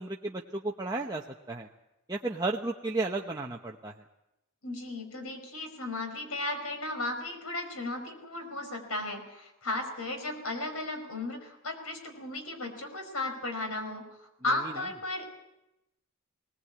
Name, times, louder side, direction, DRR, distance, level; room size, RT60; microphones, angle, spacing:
voice 1, 0.0-1.7 2.1-3.9 14.6-14.7, right 2 dB, 20° right, 0 dB, 0.9 m, -33 dB
voice 2, 4.6-14.0 14.4-15.3, left 2 dB, 85° left, 5 dB, 5.0 m, -35 dB
20.5 x 19.0 x 8.5 m, 0.92 s
head